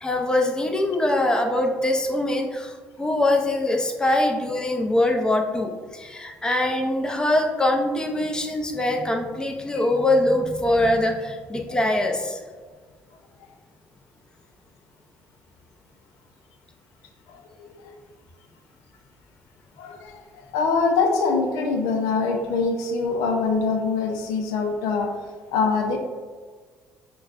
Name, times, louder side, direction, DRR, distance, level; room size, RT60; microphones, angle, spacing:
voice 1, 0.0-12.4, left 1 dB, 15° left, 3 dB, 0.5 m, -23 dB
voice 2, 20.5-25.1 25.5-26.0, left 4 dB, 85° left, 4 dB, 0.5 m, -23 dB
6.3 x 2.2 x 2.4 m, 1.5 s
supercardioid pair, 80°, 5 cm